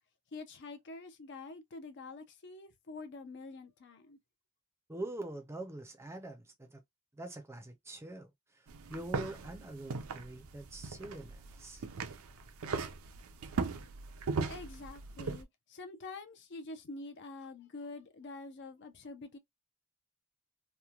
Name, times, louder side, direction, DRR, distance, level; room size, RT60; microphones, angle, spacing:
voice 1, 0.3-4.2 14.5-19.4, left 3 dB, 50° left, 0.5 m, -46 dB
voice 2, 4.9-6.8 7.1-11.8, right 1 dB, 10° right, 0.5 m, -44 dB
sound 1, 8.7-15.4, right 4 dB, 65° right, 0.5 m, -39 dB
3.0 x 2.1 x 2.3 m
head